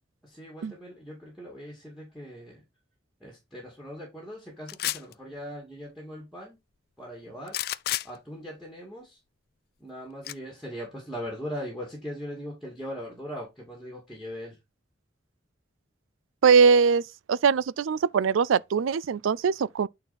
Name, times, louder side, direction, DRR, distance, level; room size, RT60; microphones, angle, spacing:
voice 1, 0.2-2.6 3.2-6.6 7.0-7.6 8.0-9.2 9.8-14.6, equal, ahead, 2.2 m, -40 dB
sound 1, 4.7-5.1 7.5-8.1 10.2-10.3, left 14 dB, 50° left, 0.3 m, -30 dB
voice 2, 16.4-17.0 17.3-19.9, right 6 dB, 85° right, 0.4 m, -21 dB
8.9 x 4.1 x 4.2 m
head